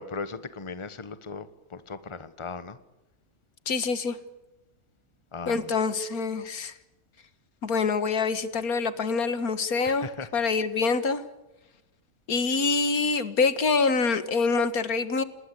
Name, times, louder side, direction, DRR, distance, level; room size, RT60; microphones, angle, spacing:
voice 1, 0.0-2.8 5.3-5.8 9.8-10.3, left 4 dB, 20° left, 13 dB, 1.2 m, -38 dB
voice 2, 3.7-4.2 5.5-6.7 7.6-10.1 10.3-11.2 12.3-15.2, left 4 dB, 85° left, 13 dB, 2.1 m, -25 dB
28.0 x 20.0 x 8.4 m, 0.99 s
omnidirectional pair, 1.5 m